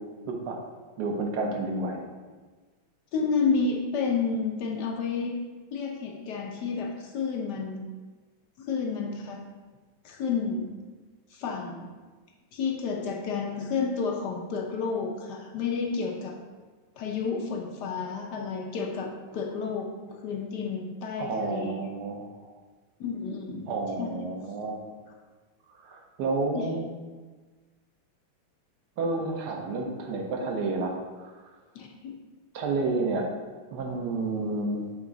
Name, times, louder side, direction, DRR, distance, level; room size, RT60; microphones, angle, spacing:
voice 1, 0.3-0.6 1.0-2.0 21.2-22.3 23.7-24.8 25.8-26.9 29.0-31.3 32.5-33.3 33.7-34.8, right 3 dB, 65° right, 2 dB, 1.3 m, -30 dB
voice 2, 3.1-5.3 5.7-7.9 8.7-9.4 10.0-10.7 11.3-11.9 12.5-16.4 17.0-19.9 20.2-21.8 23.0-23.6 24.0-24.2 26.5-26.6 31.7-32.1, left 5 dB, 65° left, 1 dB, 1.2 m, -30 dB
7.1 x 3.7 x 3.9 m, 1.4 s
omnidirectional pair, 2.2 m